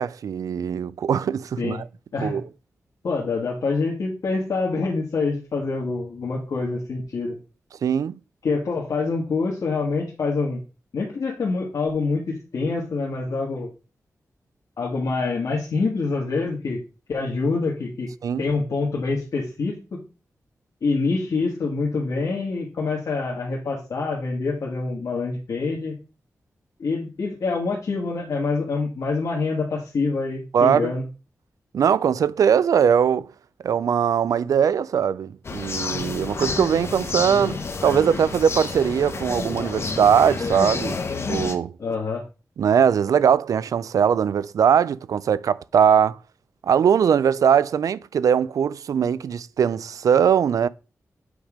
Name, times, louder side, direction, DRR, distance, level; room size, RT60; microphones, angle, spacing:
voice 1, 0.0-1.8 2.2-2.4 7.8-8.1 18.2-18.4 30.5-30.9 31.7-33.3 33.6-41.0 41.3-41.7 42.6-46.2 46.6-50.7, right 8 dB, 90° right, 0.4 m, -20 dB
voice 2, 3.0-7.4 8.4-10.6 10.9-13.7 14.8-16.8 17.1-18.1 18.4-20.0 20.8-25.9 26.8-31.0 41.8-42.2, left 4 dB, 75° left, 1.5 m, -26 dB
sound 1, 35.4-41.6, left 4 dB, 50° left, 0.9 m, -29 dB
8.0 x 3.5 x 5.0 m
wide cardioid pair, 130°, 6 cm